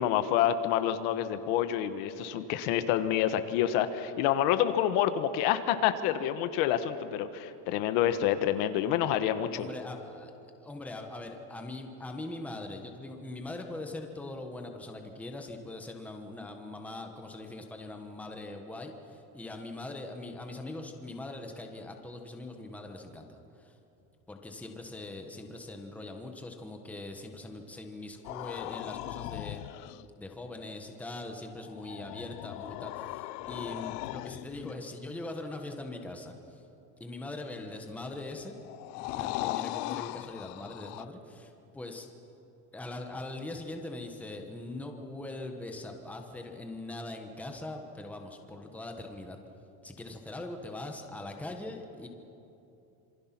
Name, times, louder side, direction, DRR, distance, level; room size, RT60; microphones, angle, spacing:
voice 1, 0.0-9.7, left 11 dB, 60° left, 10 dB, 1.3 m, -28 dB
voice 2, 9.5-10.3 10.6-23.8 24.3-29.6 30.2-36.6 37.0-38.5 39.1-42.1 42.7-49.4 49.8-52.1, left 2 dB, 5° left, 3 dB, 1.2 m, -41 dB
sound 1, 28.2-30.0 31.6-34.8 37.7-41.0, left 17 dB, 85° left, 0.8 m, -39 dB
27.0 x 24.0 x 6.0 m, 2.9 s
cardioid pair, 175°, 46 cm